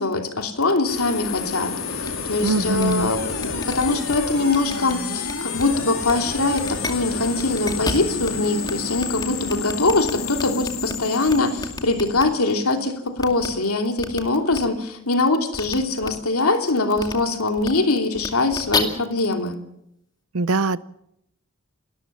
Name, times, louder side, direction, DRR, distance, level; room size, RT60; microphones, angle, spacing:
voice 1, 0.0-19.6, left 3 dB, 85° left, 5 dB, 2.9 m, -23 dB
sound 1, 0.9-12.8, left 4 dB, 65° left, 3.7 m, -30 dB
sound 2, 2.0-2.1 2.4-2.5 2.8-2.9 3.4-4.2 4.5-4.9 5.2-5.6 6.0-6.1 6.5-6.9 7.4-8.3 8.6-8.7 9.0-10.9 11.3-12.2 13.2-13.5 14.0-14.2 14.5-14.6 15.5-15.8 16.0-16.1 17.0-17.1 17.6-17.7 18.2-18.8, left 3 dB, 20° left, 2.3 m, -30 dB
voice 2, 2.4-3.1 20.3-20.8, right 3 dB, 85° right, 17 dB, 0.8 m, -22 dB
29.5 x 13.5 x 7.3 m, 0.79 s
head